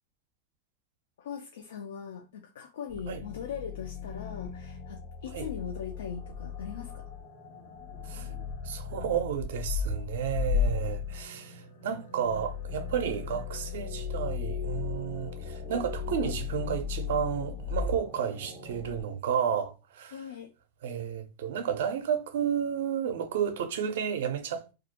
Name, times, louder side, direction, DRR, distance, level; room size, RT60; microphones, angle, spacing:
voice 1, 1.2-7.1 20.1-20.5, left 7 dB, 85° left, 0.3 m, -40 dB
sound 1, 2.9-19.0, left 6 dB, 70° left, 1.3 m, -36 dB
voice 2, 8.6-20.2 20.8-24.7, right 8 dB, 80° right, 0.4 m, -32 dB
2.3 x 2.1 x 2.8 m
hypercardioid pair, 115°, 0 cm